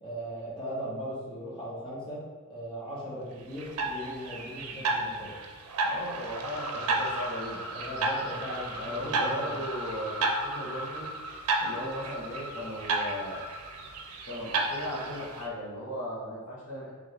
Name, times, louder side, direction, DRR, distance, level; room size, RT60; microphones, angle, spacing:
voice 1, 0.0-5.3 6.9-7.0 7.7-9.6, equal, 25° left, -7 dB, 1.2 m, -38 dB
sound 1, 3.6-15.5, right 2 dB, 85° right, 0.5 m, -32 dB
voice 2, 5.8-7.6 8.7-11.1 11.6-13.4 14.2-17.0, equal, 80° left, -9 dB, 1.1 m, -37 dB
3.8 x 3.5 x 3.3 m, 1.4 s
head